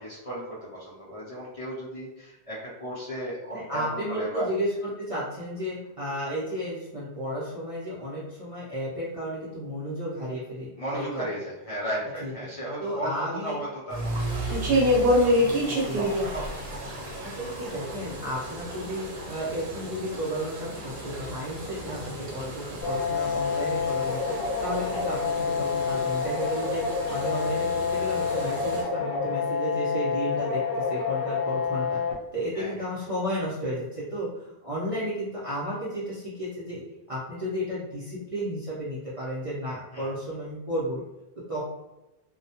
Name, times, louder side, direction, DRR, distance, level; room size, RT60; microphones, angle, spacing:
voice 1, 0.0-4.5 10.8-15.1 15.4-16.5 16.9-17.1 24.9-25.1 32.5-32.7 39.9-40.1, equal, 45° left, -8 dB, 0.5 m, -35 dB
voice 2, 3.5-11.3 12.2-12.3 12.8-13.6 15.7-16.0 17.2-32.0 32.3-36.8 37.1-41.0 41.5-41.6, equal, 40° right, -8 dB, 0.5 m, -33 dB
sound 1, 13.9-28.8, equal, 85° right, 1.0 m, -30 dB
sound 2, 22.8-32.1, left 5 dB, 75° left, 0.9 m, -28 dB
2.2 x 2.1 x 2.7 m, 1.0 s
omnidirectional pair, 1.1 m